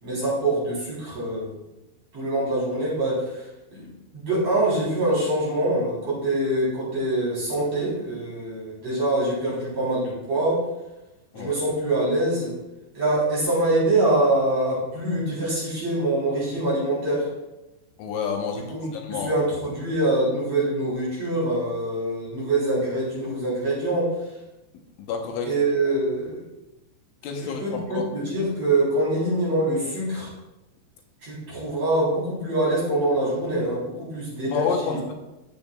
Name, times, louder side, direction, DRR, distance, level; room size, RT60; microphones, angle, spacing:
voice 1, 0.0-1.5 2.1-3.4 3.7-10.6 11.3-12.5 12.9-17.3 18.7-24.2 25.5-26.4 27.4-30.3 31.2-35.0, right 1 dB, 35° right, -7 dB, 4.4 m, -24 dB
voice 2, 18.0-18.6 18.9-19.3 25.0-25.5 27.2-28.1 34.5-35.1, left 6 dB, 80° left, 2 dB, 3.5 m, -28 dB
15.5 x 7.3 x 2.4 m, 0.99 s
omnidirectional pair, 5.5 m